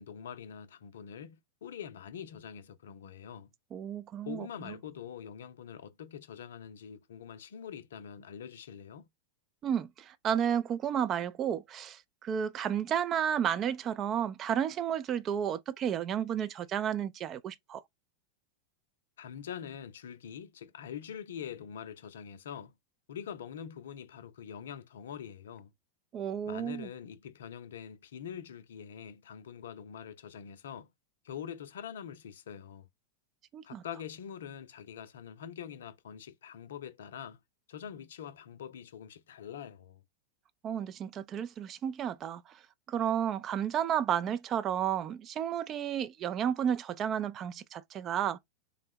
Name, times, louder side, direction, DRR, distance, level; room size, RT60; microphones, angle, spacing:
voice 1, 0.0-3.5 4.3-9.1 19.2-22.7 23.1-25.7 26.4-30.9 31.2-32.9 33.6-37.4 37.7-40.0, left 8 dB, 60° left, 0.4 m, -44 dB
voice 2, 3.7-4.7 9.6-17.8 26.1-26.9 33.5-33.8 40.6-42.6 42.9-48.4, right 9 dB, 30° right, 0.3 m, -32 dB
3.6 x 2.0 x 3.4 m
figure-of-eight pair, 90°, 0 cm